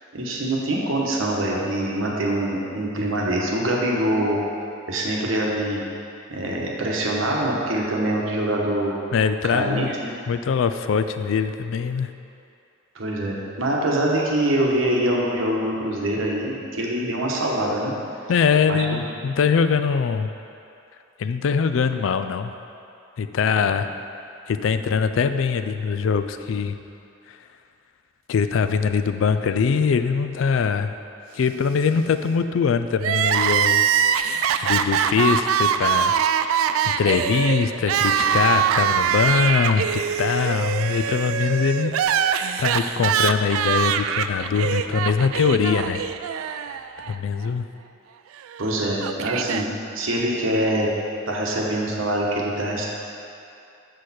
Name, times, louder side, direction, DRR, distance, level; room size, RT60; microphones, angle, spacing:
voice 1, 0.1-4.4 4.9-5.8 6.3-8.9 9.4-10.1 12.9-17.9 18.7-19.0 23.6-23.8 48.6-49.7 49.9-50.9 51.3-52.9, right 1 dB, 70° right, -3 dB, 1.1 m, -24 dB
voice 2, 9.1-9.9 10.3-12.1 18.3-20.3 21.2-22.5 23.2-23.9 24.5-26.8 28.3-31.0 31.3-33.9 34.6-36.2 36.8-42.0 42.6-46.0 47.1-47.7, left 6 dB, 65° left, 10 dB, 0.3 m, -22 dB
Crying sobbing, 33.0-47.1 47.4-47.5 48.5-49.6, right 8 dB, 90° right, 0.3 m, -23 dB
6.4 x 6.3 x 4.2 m, 2.7 s
head